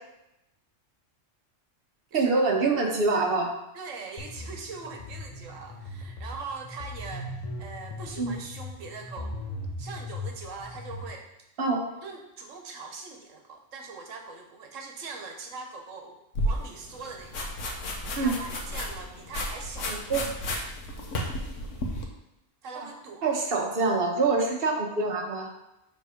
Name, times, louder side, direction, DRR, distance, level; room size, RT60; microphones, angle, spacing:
voice 1, 2.1-3.6 8.2-8.3 11.6-11.9 18.2-18.4 19.9-20.2 22.7-22.9 23.2-25.5, right 3 dB, 50° right, 0 dB, 1.2 m, -25 dB
voice 2, 3.7-7.3 7.6-9.4 9.8-11.3 11.9-17.5 18.2-20.1 22.6-23.3, right 4 dB, 85° right, 3 dB, 1.3 m, -41 dB
sound 1, 4.2-11.0, left 1 dB, 35° left, 1.0 m, -39 dB
sound 2, 16.3-22.0, left 1 dB, 80° left, 1.3 m, -33 dB
7.0 x 3.6 x 5.0 m, 0.88 s
omnidirectional pair, 1.3 m